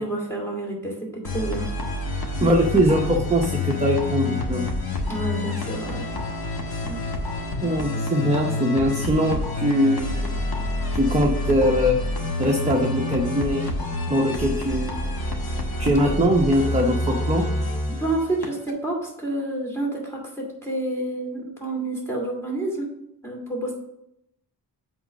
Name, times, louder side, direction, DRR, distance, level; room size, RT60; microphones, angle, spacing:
voice 1, 0.0-1.7 5.1-6.1 6.9-7.0 18.0-22.9 23.2-23.8, right 2 dB, 5° left, -2 dB, 2.4 m, -29 dB
sound 1, 1.2-18.7, left 2 dB, 70° left, 1.5 m, -28 dB
voice 2, 2.4-4.7 7.6-10.3 10.9-12.0 12.4-13.6 14.1-15.0 15.8-17.4, equal, 15° right, 0 dB, 0.8 m, -21 dB
7.9 x 4.1 x 6.3 m, 0.79 s
wide cardioid pair, 145°, 39 cm